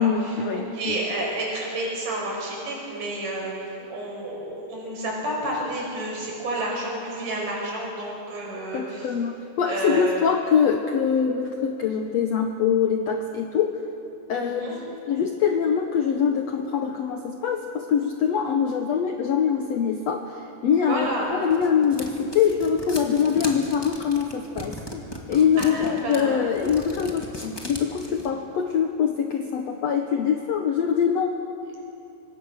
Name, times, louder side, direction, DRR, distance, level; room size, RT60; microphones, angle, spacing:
voice 1, 0.0-1.0 8.7-13.8 14.3-25.0 25.3-31.4, left 7 dB, 65° left, 4 dB, 1.7 m, -24 dB
voice 2, 0.5-3.5 3.9-9.1 9.7-10.2 14.3-14.8 20.9-21.3 25.6-26.4, right 1 dB, 60° right, -2 dB, 7.0 m, -30 dB
sound 1, 21.0-28.3, left 1 dB, 10° left, 1.2 m, -37 dB
25.5 x 23.0 x 6.5 m, 2.8 s
omnidirectional pair, 4.2 m